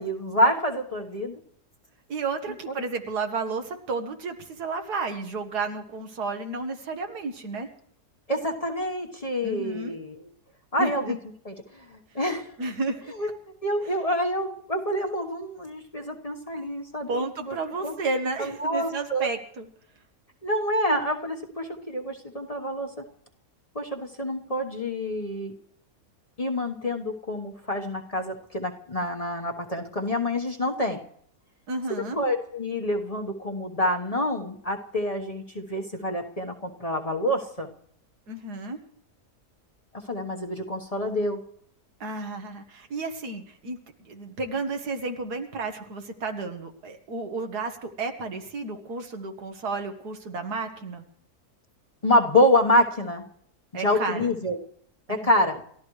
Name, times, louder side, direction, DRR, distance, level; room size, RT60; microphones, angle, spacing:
voice 1, 0.0-1.4 8.3-10.3 10.7-11.2 11.4-12.5 13.2-13.3 13.6-17.6 17.8-17.9 18.4-19.3 20.4-22.9 23.7-25.5 26.4-31.0 32.1-37.7 40.1-41.4 52.0-53.2 53.7-54.6 55.1-55.6, left 1 dB, 25° left, 2 dB, 1.2 m, -27 dB
voice 2, 2.1-7.7 9.4-10.0 10.8-11.2 12.6-13.0 17.1-19.7 31.7-32.2 38.3-38.8 42.0-51.0 53.7-54.3, right 3 dB, 90° right, 5 dB, 2.0 m, -32 dB
29.5 x 13.5 x 3.2 m, 0.64 s
omnidirectional pair, 1.7 m